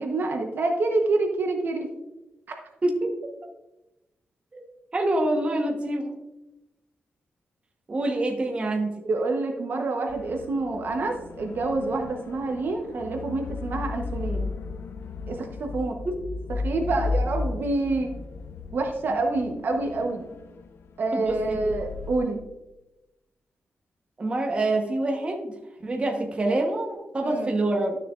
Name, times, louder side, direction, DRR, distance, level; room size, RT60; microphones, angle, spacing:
voice 1, 0.0-1.9 9.0-14.5 15.3-15.9 16.6-18.1 18.7-20.3 21.0-22.4 27.2-27.5, right 3 dB, 60° right, 3 dB, 0.9 m, -27 dB
voice 2, 2.8-3.2 4.5-4.6 4.9-6.1 7.9-8.9 16.0-16.1 21.1-21.7 24.2-25.5 25.8-28.0, right 2 dB, 30° right, 2 dB, 1.0 m, -26 dB
sound 1, 10.1-22.2, left 3 dB, 80° left, 0.5 m, -35 dB
12.0 x 6.6 x 2.4 m, 0.98 s
wide cardioid pair, 160°, 4 cm